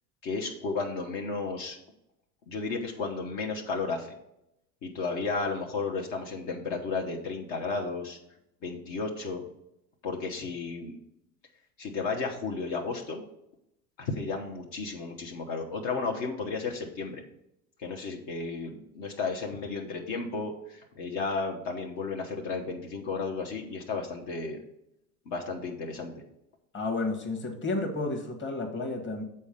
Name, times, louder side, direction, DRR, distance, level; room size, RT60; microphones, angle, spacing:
voice 1, 0.2-1.8 2.5-4.1 4.8-8.2 8.6-9.4 10.0-11.0 11.8-13.2 14.0-17.2 17.8-24.6 25.3-26.1, left 4 dB, 55° left, 1 dB, 1.3 m, -33 dB
voice 2, 26.7-29.2, left 2 dB, 25° left, 3 dB, 1.5 m, -31 dB
7.0 x 4.4 x 5.2 m, 0.83 s
hypercardioid pair, 90°, 47 cm